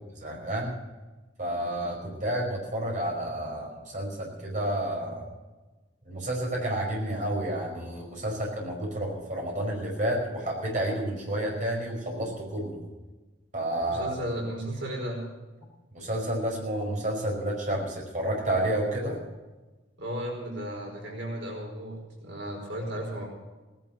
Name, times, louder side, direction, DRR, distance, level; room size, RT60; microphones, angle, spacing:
voice 1, 0.2-0.8 1.4-5.3 6.1-12.9 13.5-14.1 15.9-19.2, right 1 dB, 40° right, -1 dB, 5.3 m, -30 dB
voice 2, 13.8-15.2 20.0-23.2, equal, 80° right, 0 dB, 4.9 m, -34 dB
18.5 x 12.0 x 6.1 m, 1.2 s
head